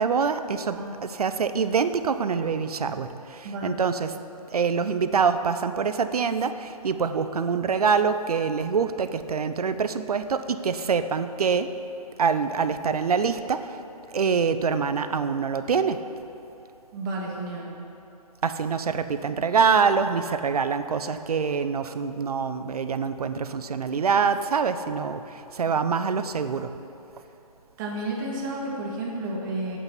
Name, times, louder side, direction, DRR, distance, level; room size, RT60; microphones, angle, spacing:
voice 1, 0.0-4.1 4.5-11.7 12.2-13.6 14.1-16.0 18.4-26.7, right 6 dB, 75° right, 11 dB, 0.7 m, -25 dB
voice 2, 0.8-1.1 3.4-3.8 16.9-17.7 27.8-29.8, right 2 dB, 30° right, -2 dB, 2.1 m, -31 dB
8.6 x 8.3 x 7.1 m, 3.0 s
hypercardioid pair, 145°, 20 cm